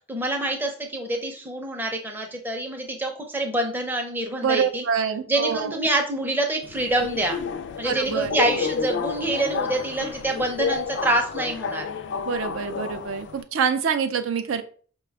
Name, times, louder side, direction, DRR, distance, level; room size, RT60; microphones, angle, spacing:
voice 1, 0.1-4.8 5.3-7.4 7.8-11.9, right 1 dB, 10° right, 2 dB, 0.5 m, -26 dB
voice 2, 4.4-5.7 7.8-8.3 12.3-14.6, right 6 dB, 70° right, 9 dB, 0.4 m, -26 dB
Subway metro underground, 6.6-13.4, left 5 dB, 55° left, 0.3 m, -30 dB
5.0 x 2.2 x 3.3 m, 0.43 s
head